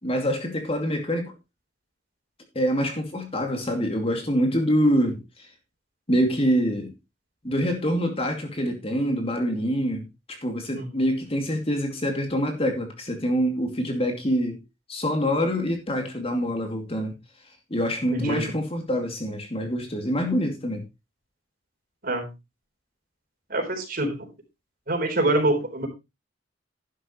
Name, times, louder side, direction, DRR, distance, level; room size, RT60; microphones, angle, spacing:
voice 1, 0.0-1.3 2.5-5.2 6.1-6.9 7.4-14.6 14.9-17.1 17.7-20.8, equal, 35° left, 2.5 m, -25 dB
voice 2, 10.7-11.1 18.1-18.6 22.0-22.3 23.5-24.3 24.9-25.9, right 1 dB, 55° right, 4.0 m, -26 dB
11.5 x 11.0 x 3.1 m
head